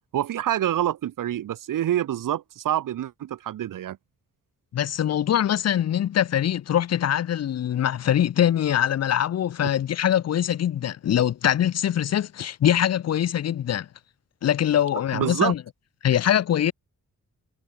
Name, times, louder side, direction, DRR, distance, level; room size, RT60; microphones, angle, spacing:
voice 1, 0.1-4.0 15.1-15.5, right 11 dB, 80° right, 1.0 m, -26 dB
voice 2, 4.7-13.9 14.4-15.6 16.0-16.7, left 10 dB, 50° left, 0.6 m, -23 dB
wide cardioid pair, 120°, 32 cm